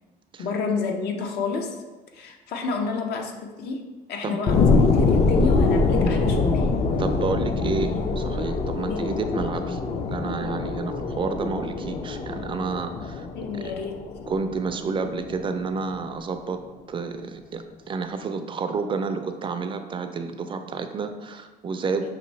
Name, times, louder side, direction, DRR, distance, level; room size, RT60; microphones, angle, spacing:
voice 1, 0.4-1.8 2.1-6.7 8.9-9.1 12.9-13.0 13.3-14.0 22.0-22.1, left 4 dB, 75° left, 3 dB, 0.7 m, -30 dB
sound 1, 4.5-15.5 15.9-16.0, left 3 dB, 35° left, 0.4 m, -24 dB
voice 2, 7.0-9.8 10.1-13.3 13.5-13.7 14.3-16.6 16.9-22.1, right 4 dB, 30° right, 7 dB, 0.4 m, -30 dB
5.7 x 2.6 x 3.1 m, 1.2 s
cardioid pair, 110°, 17 cm